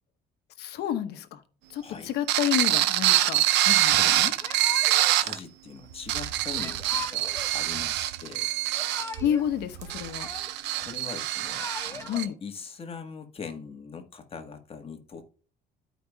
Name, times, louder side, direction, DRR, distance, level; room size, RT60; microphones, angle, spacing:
voice 1, 0.6-1.4 1.7-4.3 9.2-10.3 12.1-12.4, left 10 dB, 75° left, 1.1 m, -30 dB
voice 2, 1.7-2.1 3.8-4.4 5.1-8.5 10.7-15.3, left 5 dB, 35° left, 1.4 m, -42 dB
sound 1, 2.3-5.4 5.9-12.3, right 14 dB, 85° right, 0.6 m, -25 dB
Yell / Crying sobbing, 4.4-5.2 6.5-7.5 8.6-9.5 9.8-10.8 11.3-12.2, left 4 dB, 15° left, 0.9 m, -40 dB
14.0 x 5.1 x 2.3 m
cardioid pair, 110°, 17 cm